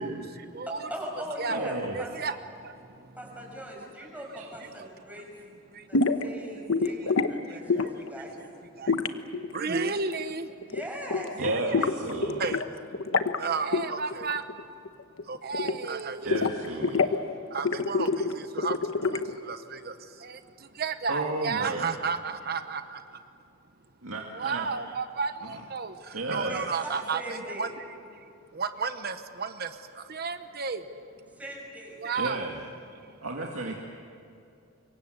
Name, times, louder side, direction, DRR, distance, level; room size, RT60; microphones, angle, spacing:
voice 1, 0.0-0.9 1.4-1.6 1.9-3.2 3.8-3.9 4.8-5.1 5.7-5.9 6.9-8.0 8.4-8.5 8.7-10.7 11.3-11.9 12.2-14.5 15.2-23.2 24.3-27.7 28.1-30.9 32.0-32.5 32.9-33.2, right 5 dB, 50° right, 9 dB, 1.0 m, -34 dB
voice 2, 0.7-2.1 3.2-5.3 5.9-8.4 10.7-11.4 26.4-27.7 31.4-32.0, right 1 dB, 5° right, -1 dB, 6.0 m, -40 dB
voice 3, 1.5-2.0 4.4-4.5 11.4-12.5 16.2-17.2 21.1-21.9 24.0-24.7 26.1-26.6 32.2-32.5 33.2-33.7, right 2 dB, 90° right, 0 dB, 2.2 m, -32 dB
sound 1, 5.9-6.2 6.7-7.3 7.7-8.1 8.9-10.3 10.6-10.8 11.1-12.7 12.9-13.4 13.7-13.9 14.1-14.6 14.9-16.0 16.3-17.2 17.6-19.4, left 4 dB, 75° left, 1.1 m, -27 dB
26.0 x 23.0 x 8.0 m, 2.6 s
head